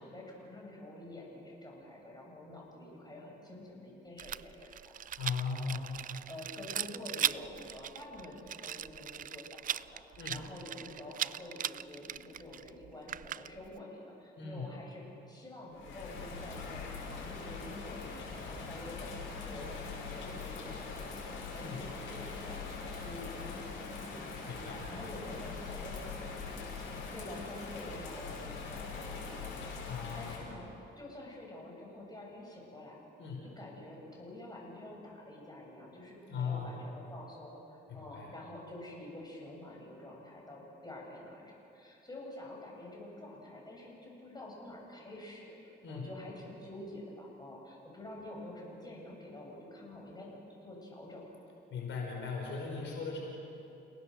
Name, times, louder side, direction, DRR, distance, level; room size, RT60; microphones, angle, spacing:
voice 1, 0.0-4.9 5.7-5.8 6.1-15.0 15.3-24.1 24.4-26.7 27.1-29.7 30.1-30.7 31.0-33.0 33.4-51.3, left 1 dB, 20° left, -2 dB, 7.7 m, -48 dB
Rattle, 4.2-13.8, right 10 dB, 45° right, 0.4 m, -39 dB
voice 2, 5.2-6.0 10.2-10.5 14.4-14.8 21.6-21.9 24.5-24.9 29.9-30.5 33.2-33.5 36.3-36.9 37.9-38.3 45.8-46.1 51.7-53.2, left 5 dB, 70° left, -1 dB, 5.4 m, -38 dB
Bird vocalization bird call bird song / Rain, 15.7-30.4, left 4 dB, 90° left, 6.3 m, -42 dB
30.0 x 18.5 x 6.7 m, 2.9 s
cardioid pair, 90°, 20 cm